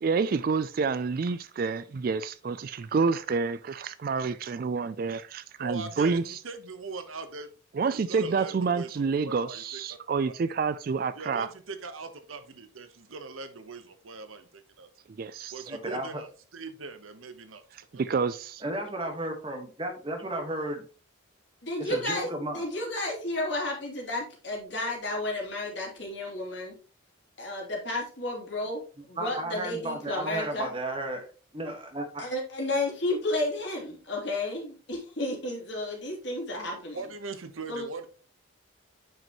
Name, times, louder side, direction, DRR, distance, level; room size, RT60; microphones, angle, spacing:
voice 1, 0.0-6.4 7.7-11.5 15.2-15.6 17.9-18.6, right 5 dB, 45° right, 0.3 m, -28 dB
voice 2, 5.6-7.5 7.9-10.0 10.2-10.3 11.1-14.9 15.5-17.6 17.9-18.0 36.9-38.1, right 4 dB, 85° right, 1.0 m, -41 dB
voice 3, 15.7-16.1 18.6-20.8 21.8-22.6 29.2-31.3 31.5-32.3, right 1 dB, 25° right, 1.4 m, -33 dB
voice 4, 21.6-22.3 22.5-26.7 27.4-28.8 29.1-30.7 32.2-37.0 37.7-37.9, left 2 dB, 60° left, 2.8 m, -32 dB
9.2 x 5.2 x 3.0 m
head